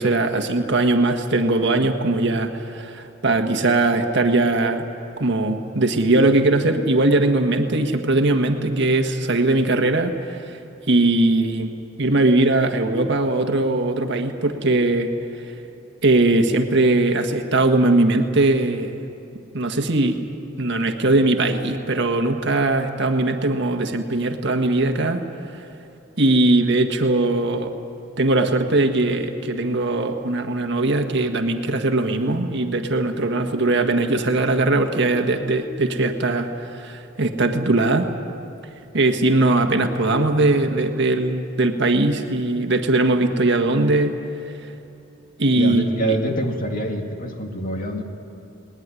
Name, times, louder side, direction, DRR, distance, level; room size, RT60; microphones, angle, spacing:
voice 1, 0.0-4.8 5.2-10.6 10.9-11.7 12.0-15.1 16.0-18.9 19.5-20.2 20.6-25.2 25.5-25.6 26.2-27.7 28.2-38.1 38.9-44.2 44.4-44.5 45.4-46.2, right 2 dB, 60° right, 5 dB, 1.6 m, -20 dB
voice 2, 45.6-48.0, right 1 dB, 40° left, 3 dB, 2.3 m, -26 dB
20.5 x 19.5 x 9.8 m, 2.8 s
head